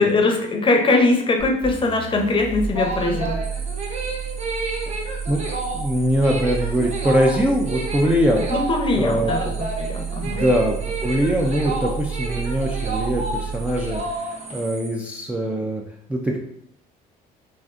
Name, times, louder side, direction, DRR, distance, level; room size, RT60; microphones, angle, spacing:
voice 1, 0.0-3.4 8.5-10.4, left 3 dB, 30° left, 2 dB, 0.6 m, -21 dB
sound 1, 1.4-14.1, right 6 dB, 60° right, 1.5 m, -31 dB
sound 2, 2.5-14.6, right 2 dB, 40° right, 0.7 m, -30 dB
sound 3, 3.4-15.0, right 3 dB, 80° right, 0.7 m, -43 dB
voice 2, 5.0-5.4 5.7-8.5 9.0-9.6 10.2-15.8 16.1-16.4, equal, 10° right, -2 dB, 0.3 m, -22 dB
3.6 x 2.5 x 2.4 m, 0.70 s
cardioid pair, 110°, 17 cm